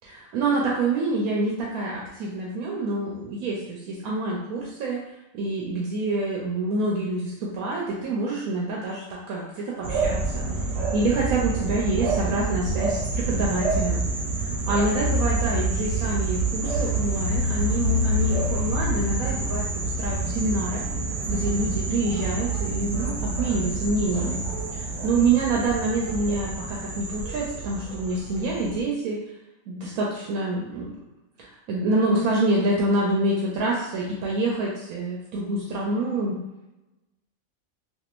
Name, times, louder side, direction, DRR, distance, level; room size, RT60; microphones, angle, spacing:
voice 1, 0.0-5.0 5.3-10.5 10.9-14.1 14.4-20.8 21.3-24.4 24.7-29.2 29.7-30.9 31.4-36.4, right 2 dB, 90° right, -3 dB, 1.1 m, -26 dB
sound 1, 9.8-28.8, right 2 dB, 65° right, 0.9 m, -27 dB
3.5 x 2.6 x 2.4 m, 0.95 s
omnidirectional pair, 1.5 m